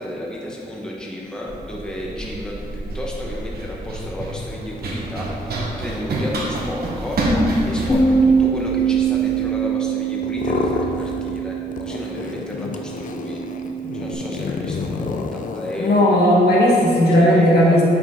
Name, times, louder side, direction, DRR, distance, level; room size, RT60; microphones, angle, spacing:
voice 1, 0.0-7.2 7.7-13.4 13.9-16.0 17.1-17.8, left 1 dB, 5° left, -3 dB, 0.9 m, -32 dB
Run, 1.5-9.4, right 1 dB, 75° right, 1.2 m, -27 dB
Bass guitar, 7.9-14.1, right 5 dB, 35° left, 1.5 m, -23 dB
sound 1, 10.2-11.5 11.7-16.1, left 4 dB, 55° left, 0.4 m, -29 dB
voice 2, 15.8-17.8, equal, 90° left, -4 dB, 1.6 m, -15 dB
9.4 x 5.0 x 3.8 m, 2.6 s
wide cardioid pair, 175°, 16 cm